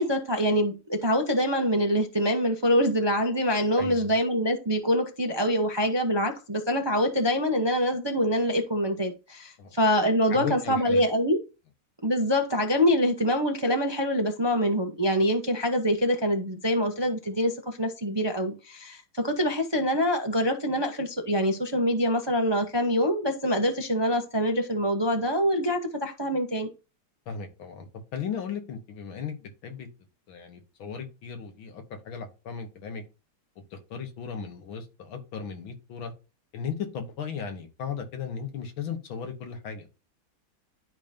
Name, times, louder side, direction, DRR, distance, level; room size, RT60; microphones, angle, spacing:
voice 1, 0.0-11.4 12.0-26.7, equal, 25° right, 0.5 m, -25 dB
voice 2, 3.8-4.1 9.6-9.7 10.3-11.0 27.3-29.9 30.3-33.0 33.7-36.1 36.5-39.9, left 6 dB, 85° left, 2.2 m, -36 dB
11.5 x 5.1 x 2.8 m
omnidirectional pair, 2.2 m